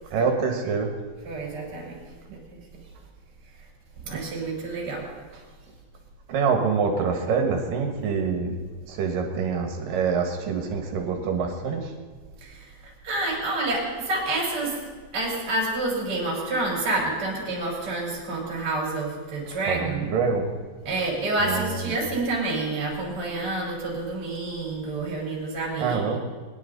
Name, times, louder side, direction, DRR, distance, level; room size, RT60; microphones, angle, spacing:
voice 1, 0.1-0.9 6.3-8.6 8.9-11.9 19.5-20.5 21.4-22.0 25.8-26.2, right 5 dB, 65° right, 3 dB, 2.9 m, -26 dB
voice 2, 1.2-2.0 2.3-2.6 4.0-5.1 5.3-5.4 12.4-14.8 15.1-20.1 20.8-26.2, right 2 dB, 35° right, -4 dB, 5.1 m, -28 dB
22.0 x 11.0 x 4.0 m, 1.4 s
omnidirectional pair, 4.5 m